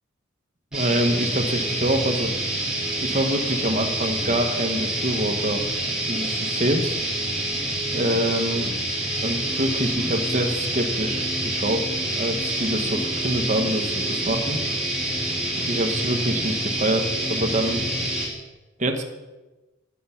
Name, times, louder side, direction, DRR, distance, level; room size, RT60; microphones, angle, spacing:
sound 1, 0.7-18.3, right 1 dB, 5° right, 2.3 m, -27 dB
voice 1, 0.7-2.6 3.0-5.6 6.0-7.0 7.9-8.7 9.2-14.6 15.7-17.9 18.8-19.0, right 1 dB, 35° right, 4 dB, 1.2 m, -25 dB
10.5 x 8.4 x 5.8 m, 1.1 s
head